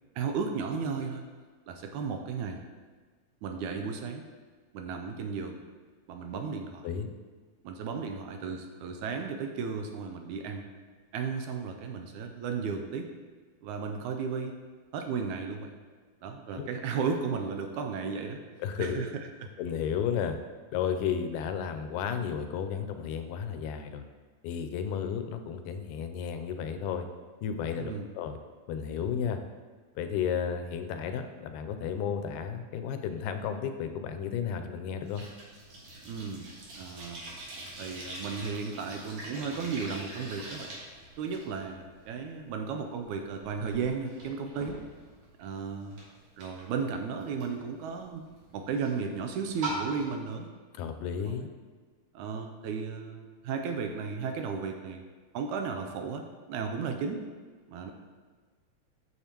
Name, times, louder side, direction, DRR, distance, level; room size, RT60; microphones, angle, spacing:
voice 1, 0.2-1.2 1.7-2.6 3.4-4.2 4.7-5.6 6.1-6.9 7.6-10.6 11.1-13.1 13.6-14.6 14.9-15.8 16.2-18.4 18.8-19.1 19.4-19.5 27.8-28.1 36.1-36.5 36.8-37.2 37.8-40.7 41.2-44.8 45.4-46.0 46.4-48.3 48.5-50.5 51.2-51.4 52.1-55.0 55.3-57.2 57.7-57.9, right 5 dB, 80° right, 5 dB, 1.9 m, -34 dB
voice 2, 18.6-19.0 19.6-20.4 20.7-24.0 24.4-27.1 27.4-28.4 28.7-29.4 30.0-35.2 50.7-51.5, left 7 dB, 85° left, 7 dB, 2.2 m, -33 dB
sound 1, 35.0-50.2, right 2 dB, 60° right, 2.7 m, -44 dB
8.5 x 7.1 x 2.9 m, 1.5 s
omnidirectional pair, 3.7 m